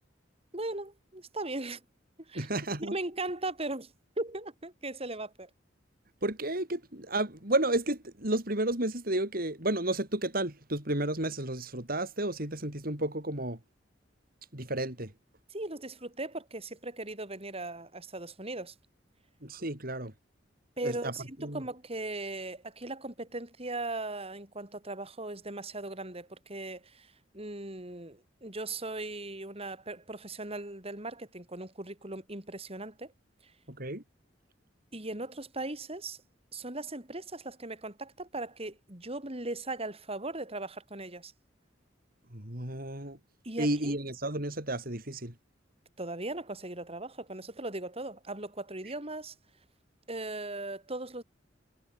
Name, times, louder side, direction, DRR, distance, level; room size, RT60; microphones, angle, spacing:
voice 1, 0.5-1.8 2.2-2.5 2.8-5.5 15.5-18.7 20.8-33.1 33.4-33.5 34.9-36.2 36.5-41.3 43.4-44.0 46.0-49.4 50.1-51.2, right 2 dB, 30° right, 5.2 m, -38 dB
voice 2, 2.3-2.9 6.2-13.6 14.5-15.1 19.4-20.1 20.8-21.1 21.4-21.6 33.7-34.0 42.3-43.2 43.6-45.3, right 1 dB, 50° right, 6.0 m, -32 dB
head